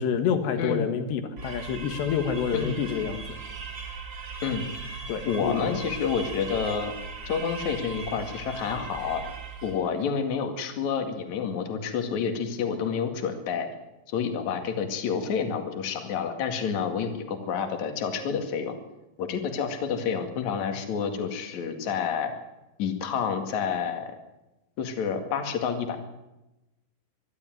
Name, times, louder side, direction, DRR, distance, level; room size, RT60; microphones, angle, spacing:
voice 1, 0.0-3.4 5.1-5.8, left 7 dB, 70° left, 8 dB, 3.7 m, -28 dB
sound 1, 1.4-9.9, right 4 dB, 30° right, 2.7 m, -38 dB
voice 2, 5.3-6.9 7.3-9.2 9.6-13.7 14.1-18.8 19.2-22.3 22.8-24.1 24.8-26.0, left 6 dB, 50° left, 6 dB, 2.8 m, -29 dB
24.5 x 12.0 x 9.3 m, 0.98 s
omnidirectional pair, 5.3 m